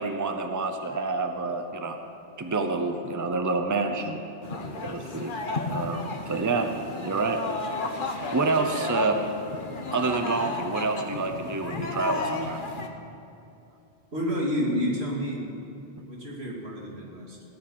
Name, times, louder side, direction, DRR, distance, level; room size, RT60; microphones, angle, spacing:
voice 1, 0.0-2.0 2.4-4.2 4.8-5.3 5.7-6.7 7.0-7.4 8.3-9.2 9.9-12.6, right 3 dB, 20° right, 6 dB, 0.8 m, -28 dB
sound 1, 4.4-12.9, left 3 dB, 55° left, 1.2 m, -33 dB
voice 2, 14.1-15.5 16.1-17.4, equal, 90° right, -3 dB, 2.8 m, -29 dB
16.5 x 7.3 x 8.8 m, 2.7 s
omnidirectional pair, 1.0 m